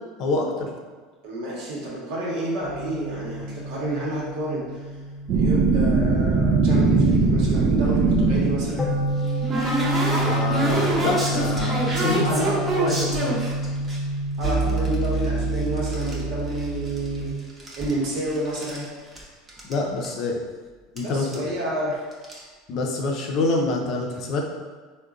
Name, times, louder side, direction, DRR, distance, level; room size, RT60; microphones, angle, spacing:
voice 1, 0.2-0.7 10.2-12.5 12.8-13.4 19.7-20.4 20.9-21.4 22.7-24.4, left 3 dB, 55° left, 1 dB, 0.5 m, -26 dB
voice 2, 1.2-4.8 5.3-8.9 12.2-13.0 14.4-17.3 17.8-18.9 21.0-22.1, right 1 dB, 70° right, -5 dB, 0.9 m, -30 dB
sound 1, 2.6-17.3, right 2 dB, 10° left, 0.9 m, -29 dB
sound 2, 5.3-9.0, right 3 dB, 50° right, 0.3 m, -20 dB
sound 3, 8.5-14.0 14.4-16.2 16.5-17.2 17.5-18.8 19.2-19.3 19.5-19.7 20.0-20.1 21.0-21.1 21.3-21.6 22.1-22.4, right 2 dB, 25° right, 0.8 m, -27 dB
3.6 x 2.2 x 2.5 m, 1.4 s
hypercardioid pair, 95°, 0 cm